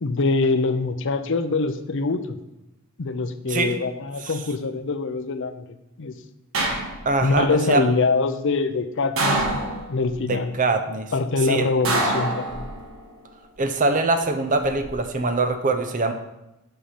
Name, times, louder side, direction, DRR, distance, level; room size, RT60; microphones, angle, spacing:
voice 1, 0.0-2.4 3.0-5.7 6.0-6.1 7.2-10.5 11.1-12.7, left 3 dB, 60° left, 10 dB, 0.6 m, -24 dB
sound 1, 6.5-7.3 9.2-10.1 11.8-13.0 14.4-14.9, right 2 dB, 65° right, 1.4 m, -25 dB
voice 2, 7.1-7.8 10.2-11.1 11.5-11.7 13.6-16.1, right 3 dB, 35° right, 7 dB, 0.6 m, -23 dB
7.7 x 5.7 x 5.0 m, 0.94 s
head